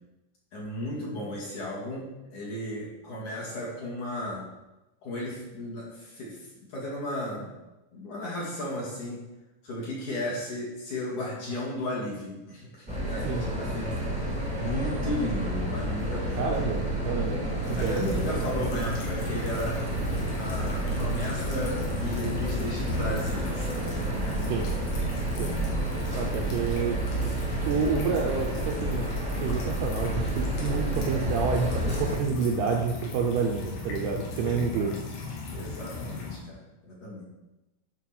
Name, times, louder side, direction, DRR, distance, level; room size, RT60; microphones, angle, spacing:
voice 1, 0.5-4.5 5.0-7.5 7.9-9.2 9.6-16.6 17.8-19.9 20.3-24.5 34.4-35.0 35.5-37.3, left 1 dB, 50° left, -5 dB, 3.0 m, -35 dB
sound 1, 12.9-32.2, right 1 dB, ahead, 1.6 m, -30 dB
voice 2, 16.4-17.9 18.3-18.4 24.4-24.7 25.4-25.5 26.1-27.0 27.7-29.0 29.4-34.9, right 5 dB, 75° right, 1 dB, 2.5 m, -29 dB
sound 2, 17.6-36.4, left 4 dB, 85° left, 4.2 m, -38 dB
11.5 x 5.4 x 6.0 m, 1.0 s
omnidirectional pair, 5.4 m